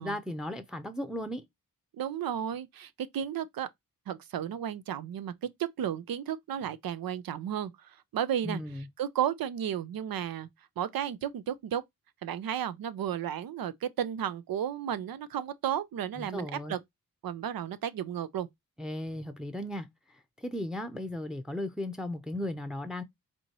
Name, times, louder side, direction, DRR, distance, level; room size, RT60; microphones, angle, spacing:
voice 1, 0.0-1.4 8.4-8.9 16.2-16.8 18.8-23.0, left 1 dB, ahead, 0.6 m, -36 dB
voice 2, 2.0-3.7 4.1-5.3 5.8-7.7 8.1-8.6 9.0-10.5 10.8-11.8 12.2-16.8 17.2-18.5, right 9 dB, 90° right, 0.6 m, -33 dB
4.4 x 2.7 x 2.9 m
cardioid pair, 75°, 34 cm